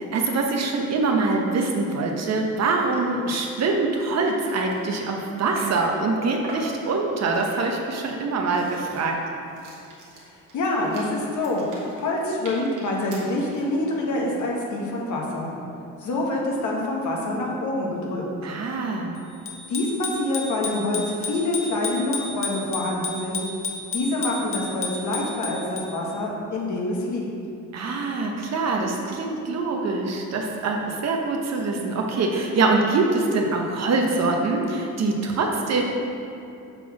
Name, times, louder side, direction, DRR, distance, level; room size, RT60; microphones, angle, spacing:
voice 1, 0.0-9.2 18.4-19.1 27.7-35.8, right 3 dB, 60° right, 1 dB, 1.1 m, -24 dB
sound 1, 2.9-3.0 3.3-3.5 3.9-5.9 6.4-6.8 7.3-7.8 8.3-13.7, right 2 dB, 90° right, 1.6 m, -43 dB
voice 2, 10.2-15.5 16.0-18.2 19.7-23.4 23.9-27.3, left 2 dB, 75° left, -2 dB, 1.5 m, -26 dB
Bicycle bell, 19.5-26.1, left 4 dB, 45° left, 1.0 m, -33 dB
6.8 x 3.8 x 6.2 m, 2.7 s
cardioid pair, 90°, 30 cm